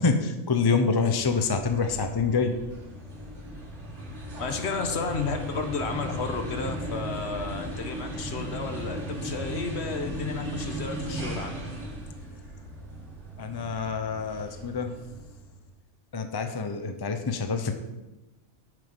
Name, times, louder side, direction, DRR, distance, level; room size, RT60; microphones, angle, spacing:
voice 1, 0.0-2.5 13.4-14.9 16.1-17.7, left 4 dB, 25° left, 7 dB, 0.5 m, -26 dB
sound 1, 1.2-15.6, equal, 65° right, 2.1 m, -37 dB
voice 2, 4.4-11.5, left 4 dB, 60° left, 6 dB, 1.2 m, -32 dB
9.0 x 6.5 x 5.3 m, 1.1 s
omnidirectional pair, 1.3 m